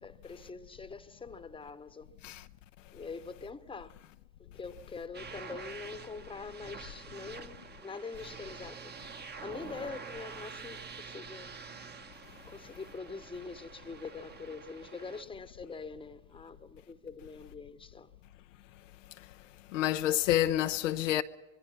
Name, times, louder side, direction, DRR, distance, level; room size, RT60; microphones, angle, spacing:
voice 1, 0.0-2.1 2.9-3.9 4.5-8.9 9.4-11.5 12.5-18.1, left 4 dB, 15° left, 1.1 m, -44 dB
sound 1, 5.1-15.2, right 5 dB, 25° right, 1.4 m, -47 dB
voice 2, 19.7-21.2, left 13 dB, 80° left, 0.8 m, -28 dB
25.0 x 22.0 x 5.8 m
hypercardioid pair, 75°, 37 cm